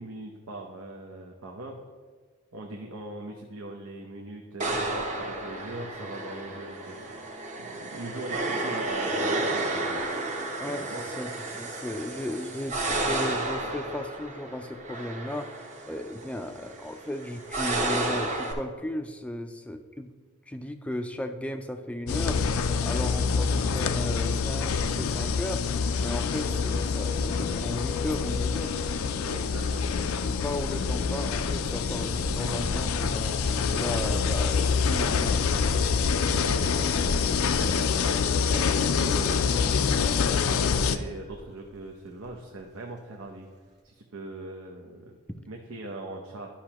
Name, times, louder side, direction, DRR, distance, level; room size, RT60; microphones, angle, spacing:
voice 1, 0.0-1.8 2.5-7.2 7.6-10.1 10.8-11.0 29.2-29.9 36.4-37.8 38.5-43.5 43.8-45.2 45.5-46.5, right 2 dB, 85° right, 0 dB, 0.8 m, -40 dB
sound 1, 4.6-18.5, right 2 dB, 35° right, 0.9 m, -32 dB
voice 2, 10.6-15.6 15.9-20.1 20.5-22.4 22.8-25.6 26.0-28.7 30.2-36.2, left 1 dB, 5° left, 7 dB, 0.3 m, -36 dB
sound 2, 22.1-41.0, left 5 dB, 85° left, 0.4 m, -26 dB
sound 3, 28.4-28.7 30.0-38.6 39.0-39.3 39.5-40.1 40.9-41.8 42.2-42.3 42.6-42.7, equal, 55° right, 1.5 m, -41 dB
12.0 x 5.7 x 2.9 m, 1.5 s
head